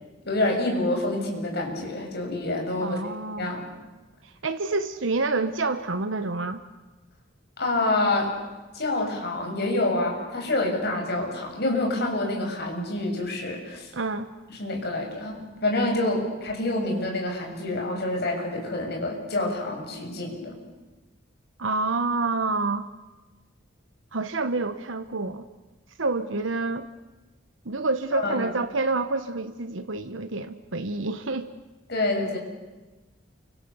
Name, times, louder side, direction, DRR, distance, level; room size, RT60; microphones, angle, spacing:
voice 1, 0.2-3.0 3.4-3.8 7.6-8.3 8.7-13.9 14.5-20.6 28.1-28.5 31.9-32.4, left 2 dB, 60° left, 1 dB, 7.1 m, -27 dB
voice 2, 2.8-3.5 4.2-6.6 13.9-14.3 21.6-22.9 24.1-25.4 26.0-26.9 27.6-31.5, right 3 dB, 90° right, 9 dB, 1.1 m, -28 dB
30.0 x 25.5 x 7.1 m, 1.1 s
head